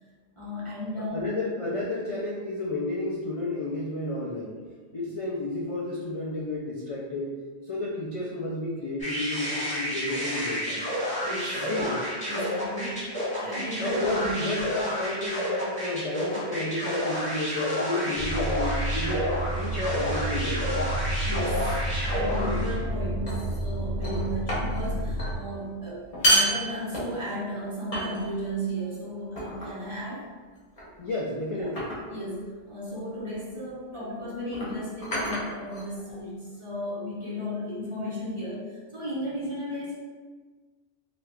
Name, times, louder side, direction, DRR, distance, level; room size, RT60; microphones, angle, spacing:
voice 1, 0.4-1.4 11.2-11.6 12.3-13.1 13.4-14.5 21.2-30.3 31.5-31.7 32.1-40.0, equal, 35° right, -7 dB, 0.6 m, -34 dB
voice 2, 1.0-4.6 4.9-10.9 11.5-12.0 13.8-20.8 22.4-22.6 31.0-31.9, left 2 dB, 55° left, -5 dB, 0.4 m, -32 dB
sound 1, 9.0-22.8, equal, 5° left, 1.1 m, -30 dB
sound 2, 18.2-25.3, right 1 dB, 75° left, 0.9 m, -30 dB
sound 3, 22.1-22.5 23.3-23.7 24.0-24.9 25.2-25.4 26.0-27.4 27.9-28.5 29.4-29.8 30.8-31.1 31.8-32.2 33.3-33.5 34.5-36.2, right 1 dB, 35° left, 0.9 m, -29 dB
2.9 x 2.4 x 3.3 m, 1.4 s
omnidirectional pair, 1.1 m